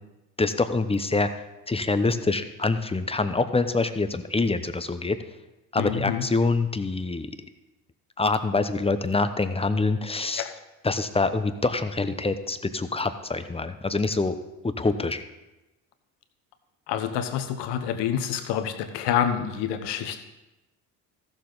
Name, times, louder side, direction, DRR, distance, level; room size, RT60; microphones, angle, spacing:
voice 1, 0.4-1.3 1.7-5.2 5.7-7.3 8.2-10.5 10.8-14.4 14.8-15.2, left 3 dB, 15° left, 10 dB, 0.8 m, -25 dB
voice 2, 5.8-6.3 10.4-10.5 16.9-20.2, left 9 dB, 70° left, 8 dB, 1.1 m, -27 dB
14.5 x 6.9 x 4.0 m, 1.0 s
hypercardioid pair, 60°, 43 cm